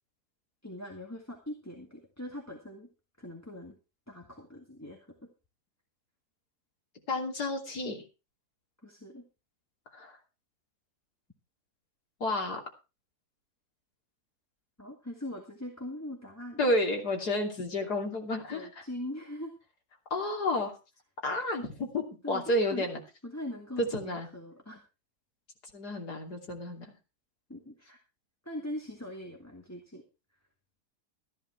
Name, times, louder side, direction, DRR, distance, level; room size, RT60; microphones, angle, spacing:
voice 1, 0.6-2.9 3.2-3.8 4.1-5.3 8.8-9.2 14.8-16.6 18.5-19.5 22.2-24.8 27.5-28.0 28.4-30.0, left 1 dB, 10° left, 1 dB, 1.9 m, -41 dB
voice 2, 7.1-8.0 9.9-10.2 12.2-12.6 16.6-18.7 20.1-20.8 21.2-23.0 23.8-24.3 25.7-26.9, left 1 dB, 85° left, 2 dB, 3.5 m, -31 dB
14.0 x 10.5 x 4.6 m, 0.30 s
omnidirectional pair, 1.7 m